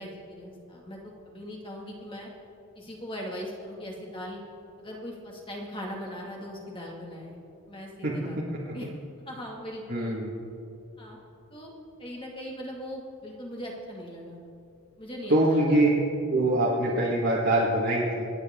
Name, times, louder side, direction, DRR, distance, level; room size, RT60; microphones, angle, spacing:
voice 1, 0.0-2.3 2.8-4.4 4.8-7.4 7.7-8.9 9.3-10.2 11.0-11.2 11.5-11.7 12.0-14.4 15.0-15.8 16.9-17.0, equal, 25° left, -1 dB, 2.3 m, -40 dB
voice 2, 9.9-10.3 15.3-15.9 16.3-18.3, right 1 dB, 50° right, -7 dB, 2.1 m, -23 dB
28.0 x 9.7 x 3.8 m, 2.7 s
head